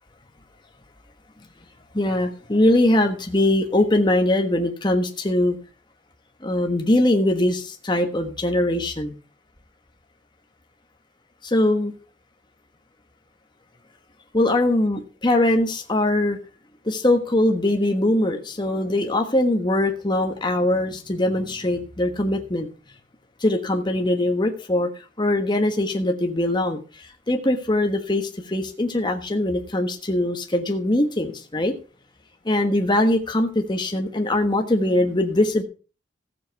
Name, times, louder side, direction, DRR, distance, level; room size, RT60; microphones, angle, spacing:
voice 1, 1.9-5.6 6.4-9.2 11.4-11.9 14.3-16.4 16.8-22.7 23.4-24.9 25.2-31.7 32.4-35.6, left 1 dB, 25° left, 4 dB, 1.3 m, -22 dB
15.0 x 7.6 x 4.6 m, 0.35 s
head